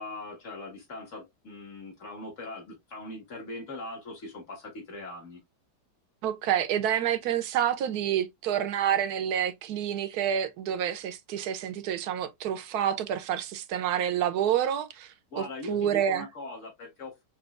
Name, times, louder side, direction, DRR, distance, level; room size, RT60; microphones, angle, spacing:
voice 1, 0.0-5.4 15.3-17.2, left 2 dB, 45° left, 2.1 m, -41 dB
voice 2, 6.2-16.3, right 9 dB, 70° right, 1.1 m, -28 dB
5.9 x 2.7 x 2.4 m
omnidirectional pair, 1.8 m